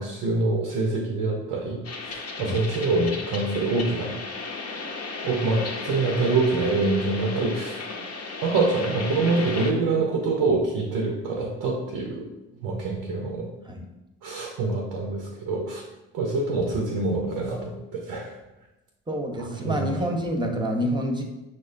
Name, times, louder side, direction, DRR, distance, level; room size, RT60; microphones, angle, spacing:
voice 1, 0.0-4.2 5.2-7.8 8.4-12.3 12.6-13.5 14.2-15.9 16.1-18.4 19.4-20.0, right 3 dB, 75° right, 1 dB, 0.6 m, -25 dB
sound 1, 1.8-9.7, left 4 dB, 45° left, 0.6 m, -35 dB
voice 2, 19.1-21.2, equal, 15° right, 2 dB, 0.8 m, -27 dB
6.0 x 2.1 x 2.5 m, 0.99 s
hypercardioid pair, 45°, 36 cm